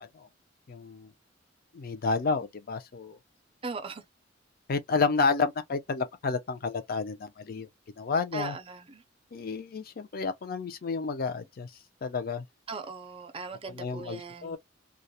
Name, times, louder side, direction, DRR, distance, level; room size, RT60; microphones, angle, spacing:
voice 1, 0.7-1.1 1.7-3.2 4.7-7.7 8.0-8.5 9.3-11.7 12.0-12.4 13.7-14.6, left 4 dB, 50° left, 0.5 m, -30 dB
voice 2, 3.6-4.0 8.3-9.0 12.7-14.6, right 4 dB, 30° right, 0.4 m, -39 dB
2.3 x 2.0 x 2.7 m
head